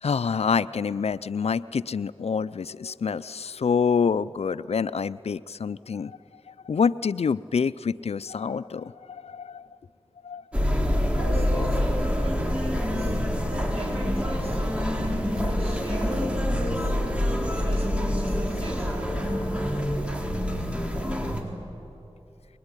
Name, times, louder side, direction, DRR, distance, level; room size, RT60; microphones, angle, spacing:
voice 1, 0.0-6.2 6.5-9.7 10.2-10.4 11.2-11.3, left 6 dB, 75° left, 16 dB, 0.5 m, -27 dB
sound 1, 10.5-21.4, equal, 10° right, 3.7 m, -26 dB
voice 2, 11.1-13.2 13.5-16.9 17.5-19.2, right 2 dB, 65° right, -2 dB, 7.7 m, -42 dB
23.0 x 22.0 x 9.9 m, 2.7 s
cardioid pair, 50°, 11 cm